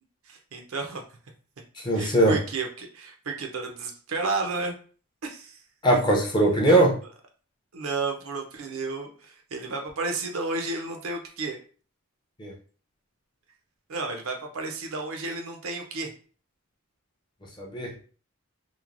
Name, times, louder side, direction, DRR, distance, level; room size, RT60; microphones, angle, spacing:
voice 1, 0.3-1.0 1.9-4.8 5.2-5.6 6.7-6.9 7.7-11.6 13.9-16.1, right 3 dB, 70° right, 3 dB, 0.5 m, -32 dB
voice 2, 1.8-2.4 5.8-7.0 12.4-12.5 17.6-17.9, right 1 dB, 20° left, -1 dB, 0.5 m, -21 dB
3.0 x 2.0 x 2.4 m, 0.40 s
head